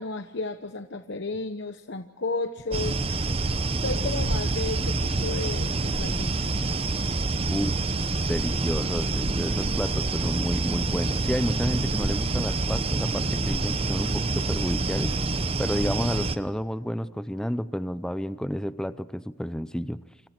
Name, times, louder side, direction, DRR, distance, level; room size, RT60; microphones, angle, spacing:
voice 1, 0.0-3.0 3.8-6.6, left 3 dB, 60° left, 7 dB, 1.0 m, -33 dB
sound 1, 2.7-16.4, right 3 dB, 30° right, 0.9 m, -27 dB
voice 2, 7.5-7.8 8.1-15.2 15.6-20.0, equal, 5° left, 13 dB, 0.7 m, -30 dB
28.5 x 26.0 x 4.5 m, 1.1 s
head